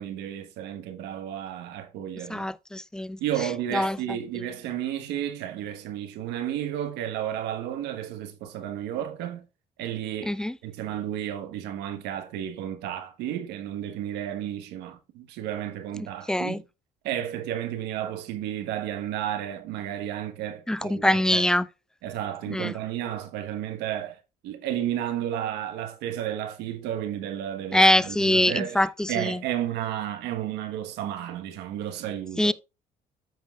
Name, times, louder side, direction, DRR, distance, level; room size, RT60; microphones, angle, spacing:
voice 1, 0.0-2.5 3.2-9.4 9.8-10.4 10.6-16.6 17.0-21.5 22.0-24.2 24.4-32.5, right 11 dB, 90° right, 1.3 m, -32 dB
voice 2, 2.3-3.2 3.7-4.0 10.3-10.5 16.3-16.6 20.7-21.7 22.5-22.7 27.7-29.4 32.4-32.5, left 1 dB, 5° left, 0.3 m, -23 dB
14.0 x 5.3 x 2.4 m
cardioid pair, 110°, 17 cm